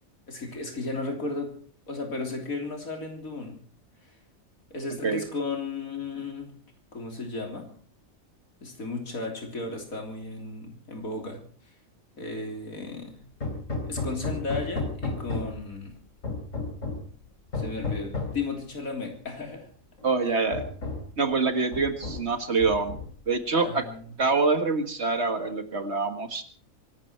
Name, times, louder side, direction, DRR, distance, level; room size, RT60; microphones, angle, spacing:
voice 1, 0.3-1.6 1.9-3.6 4.7-6.6 6.9-7.7 8.6-11.4 12.2-13.3 13.9-15.9 17.5-19.7 23.5-24.1, left 3 dB, 80° left, 3 dB, 3.9 m, -34 dB
Hammer, 13.4-15.7 16.2-17.1 17.5-18.4 19.5-19.6 20.0-20.1 20.5-21.2 21.7-22.3 22.6-23.3, left 3 dB, 65° left, 3.6 m, -33 dB
voice 2, 20.0-20.6 21.2-23.0 23.3-23.9 24.2-26.4, right 4 dB, 50° right, 9 dB, 1.9 m, -25 dB
24.5 x 12.0 x 4.5 m, 0.43 s
omnidirectional pair, 1.4 m